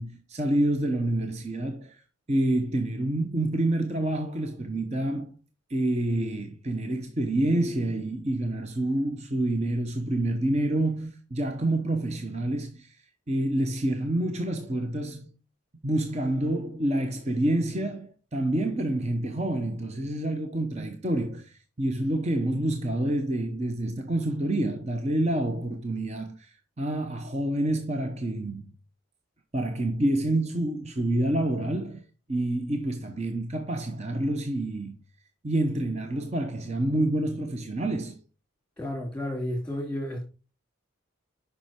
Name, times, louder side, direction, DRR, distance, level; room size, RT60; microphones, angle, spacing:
voice 1, 0.0-2.0 2.3-5.3 5.7-12.9 13.3-15.3 15.8-26.5 26.8-28.6 29.5-32.0 32.3-34.9 35.4-38.2, right 1 dB, 30° right, 0.8 m, -28 dB
voice 2, 38.8-40.2, left 1 dB, 5° left, 3.0 m, -32 dB
7.8 x 5.5 x 4.3 m
head